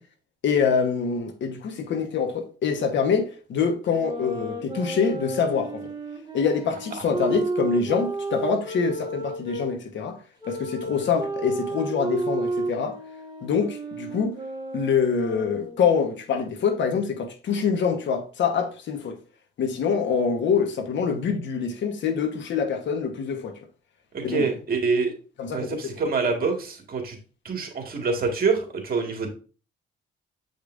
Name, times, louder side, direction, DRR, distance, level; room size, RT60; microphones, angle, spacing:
voice 1, 0.4-5.9 6.3-10.2 10.5-13.0 13.4-14.3 14.7-19.2 19.6-23.6 24.2-24.5 25.4-25.8, left 6 dB, 70° left, 1.2 m, -25 dB
sound 1, 3.9-9.7 10.4-15.9, right 2 dB, 20° right, 1.9 m, -32 dB
voice 2, 24.1-25.1 25.5-27.2 27.4-29.3, right 4 dB, 50° right, 1.9 m, -26 dB
7.9 x 5.2 x 2.6 m
cardioid pair, 90°, 20 cm